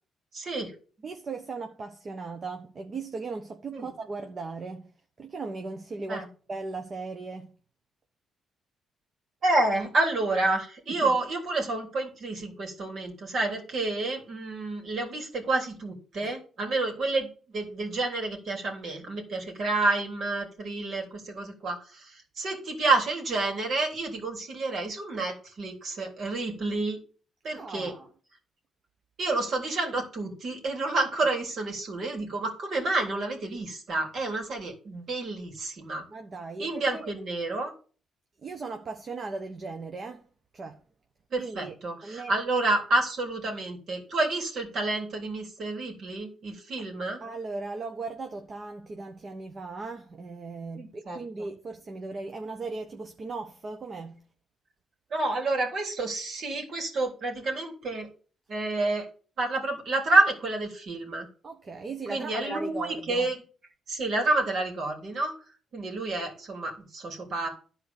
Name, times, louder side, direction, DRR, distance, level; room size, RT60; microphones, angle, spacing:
voice 1, 0.3-0.7 3.7-3.9 6.1-6.3 9.4-27.0 27.4-27.9 29.2-36.0 36.6-37.7 41.3-47.2 50.8-51.2 55.1-58.1 58.5-59.1 59.4-61.3 62.1-63.4 63.9-65.3 65.7-67.5, right 2 dB, 60° right, 3.5 m, -29 dB
voice 2, 1.0-4.9 5.2-7.5 10.9-11.2 16.2-16.3 19.1-19.2 27.5-28.1 36.1-37.1 38.4-40.2 40.5-40.8 41.4-41.7 42.0-42.3 47.2-54.2 61.4-63.3, right 3 dB, 40° right, 1.2 m, -37 dB
11.5 x 4.5 x 7.1 m
cardioid pair, 90°, 0 cm